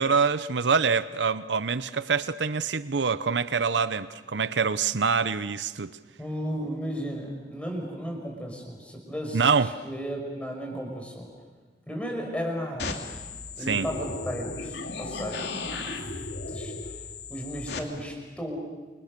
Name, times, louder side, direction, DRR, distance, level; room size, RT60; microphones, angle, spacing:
voice 1, 0.0-5.9 9.3-9.7 13.7-13.8, right 5 dB, 85° right, 14 dB, 0.8 m, -25 dB
voice 2, 6.2-11.3 11.9-13.1 13.6-16.1 16.5-17.0 17.3-18.6, equal, 5° left, 1 dB, 5.8 m, -35 dB
sound 1, 12.8-17.8, left 3 dB, 65° left, 2.8 m, -35 dB
29.0 x 27.5 x 6.8 m, 1.3 s
head